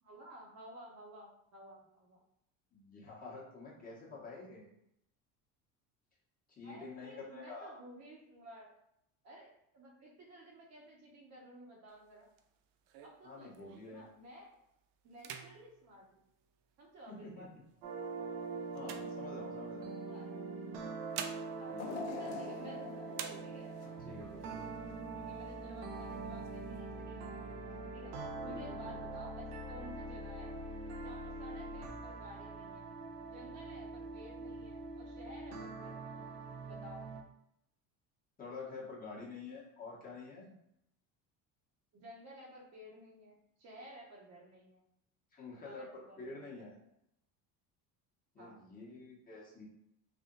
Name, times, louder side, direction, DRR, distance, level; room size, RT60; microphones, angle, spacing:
voice 1, 0.0-2.2 6.6-8.7 9.2-12.3 13.0-14.5 15.0-16.2 16.8-17.5 18.8-18.9 20.1-20.3 21.5-23.7 25.1-28.1 28.4-30.5 31.0-32.9 33.3-36.3 36.7-37.0 41.9-44.8 45.6-46.6 48.4-48.6, equal, 45° right, -2 dB, 1.0 m, -54 dB
voice 2, 2.7-4.7 6.6-7.8 13.2-14.0 17.1-17.4 18.7-19.9 21.7-22.4 23.8-24.6 28.5-29.0 38.4-40.5 45.3-46.7 48.3-49.6, left 3 dB, 25° left, -5 dB, 1.2 m, -48 dB
sound 1, 11.9-14.1 14.5-14.8 15.1-17.0 17.7-19.8 20.7-22.8 23.1-24.0 24.4-24.5 24.8-25.4 25.9-26.8, right 8 dB, 70° right, 0.5 m, -49 dB
sound 2, 17.8-37.2, right 3 dB, 85° right, 0.9 m, -43 dB
sound 3, 21.8-24.9 25.4-25.5 26.5-26.6, left 6 dB, 70° left, 0.6 m, -45 dB
3.5 x 2.5 x 3.9 m, 0.78 s
cardioid pair, 140°, 37 cm